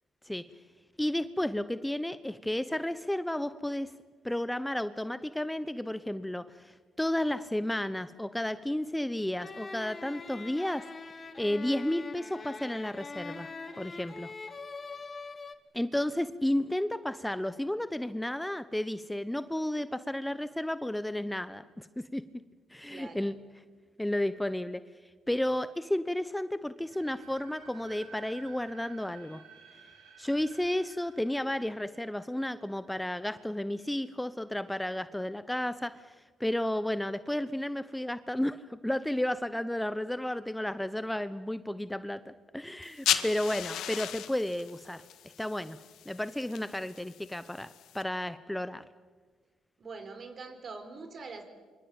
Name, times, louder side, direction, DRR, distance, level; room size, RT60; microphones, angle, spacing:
voice 1, 1.0-3.9 4.2-10.8 11.4-13.5 13.8-14.3 15.7-21.9 22.1-22.2 22.7-23.4 24.0-24.8 25.3-29.4 30.2-45.8 46.1-48.8, left 1 dB, 5° left, 13 dB, 0.9 m, -32 dB
sound 1, 9.4-15.6, left 4 dB, 35° left, 2.1 m, -43 dB
voice 2, 22.9-23.3 49.8-51.4, right 4 dB, 45° right, 8 dB, 4.9 m, -44 dB
sound 2, 26.8-33.7, right 6 dB, 90° right, 5.9 m, -55 dB
sound 3, 42.8-48.0, left 11 dB, 80° left, 1.8 m, -36 dB
26.0 x 24.5 x 9.0 m, 1.5 s
cardioid pair, 90°, 0 cm